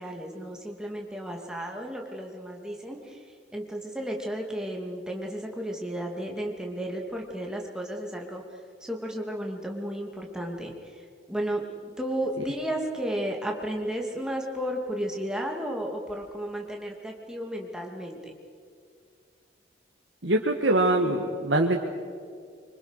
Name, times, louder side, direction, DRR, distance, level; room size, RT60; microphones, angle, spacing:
voice 1, 0.0-11.6 12.0-18.2, equal, 5° right, 0 dB, 2.6 m, -33 dB
voice 2, 20.2-21.8, right 1 dB, 80° right, 1 dB, 1.7 m, -23 dB
25.5 x 25.0 x 6.6 m, 2.2 s
head